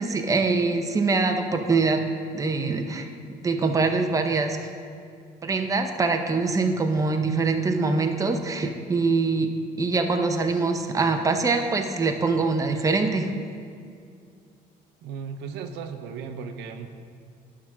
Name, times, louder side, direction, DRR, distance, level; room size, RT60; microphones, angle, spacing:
voice 1, 0.0-2.0 2.3-3.1 3.4-4.6 5.4-9.5 9.8-13.3, right 3 dB, 20° right, 5 dB, 0.7 m, -24 dB
voice 2, 15.0-16.9, right 6 dB, 90° right, 7 dB, 0.6 m, -36 dB
11.0 x 3.7 x 6.0 m, 2.3 s
cardioid pair, 110°, 17 cm